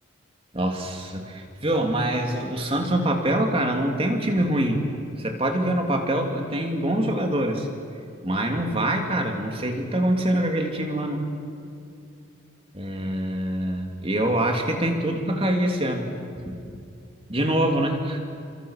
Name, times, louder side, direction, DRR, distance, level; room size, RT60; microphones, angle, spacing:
voice 1, 0.5-4.8 5.2-7.7 8.2-11.3 12.7-16.1 16.4-16.6 17.3-18.2, right 1 dB, 30° right, 3 dB, 3.1 m, -24 dB
29.0 x 26.0 x 6.7 m, 2.5 s
head